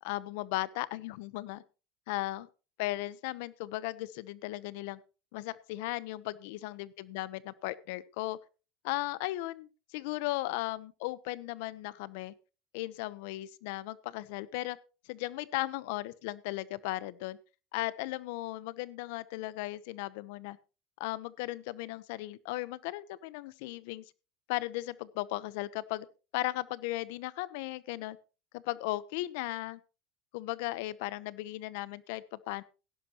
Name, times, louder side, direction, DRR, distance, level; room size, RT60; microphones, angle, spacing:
voice 1, 0.0-1.6 2.1-2.5 2.8-5.0 5.3-8.4 8.8-12.3 12.7-14.8 15.1-17.4 17.7-20.6 21.0-24.0 24.5-26.1 26.3-28.2 28.5-29.8 30.3-32.6, left 18 dB, 75° left, 18 dB, 0.9 m, -36 dB
17.5 x 11.0 x 3.0 m, 0.33 s
cardioid pair, 145°, 0 cm